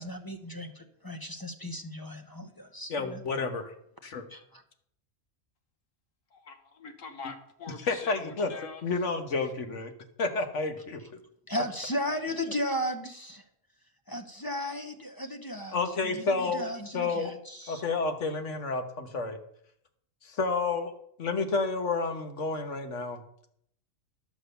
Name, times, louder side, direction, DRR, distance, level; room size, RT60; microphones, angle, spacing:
voice 1, 0.0-3.2 4.3-4.6 11.5-13.4 14.1-17.8, equal, 20° left, 6 dB, 0.8 m, -35 dB
voice 2, 2.9-3.7 4.0-4.2 7.9-8.5 8.8-9.9 10.2-11.0 15.7-16.7 16.9-17.4 17.7-19.4 20.2-20.9 21.2-23.2, left 3 dB, 70° left, 7 dB, 1.5 m, -30 dB
voice 3, 6.3-8.8 12.3-12.4, left 5 dB, 85° left, 7 dB, 1.6 m, -44 dB
12.0 x 6.2 x 6.8 m, 0.70 s
omnidirectional pair, 1.3 m